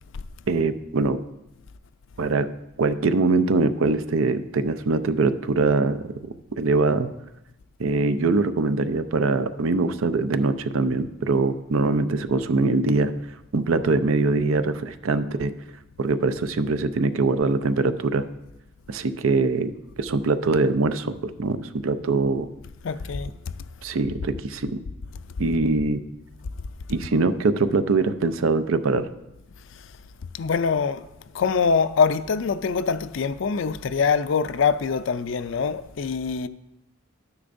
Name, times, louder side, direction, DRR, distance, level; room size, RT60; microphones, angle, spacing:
voice 1, 0.5-1.2 2.2-2.5 2.8-6.1 6.6-7.1 7.8-13.1 13.5-15.5 16.0-18.2 18.9-19.7 20.0-22.5 23.8-24.8 25.4-26.0 26.9-29.1, right 3 dB, 75° right, 0.5 m, -23 dB
voice 2, 22.8-23.3 30.3-31.1 31.3-36.5, left 5 dB, 60° left, 0.4 m, -24 dB
12.5 x 9.9 x 2.6 m
head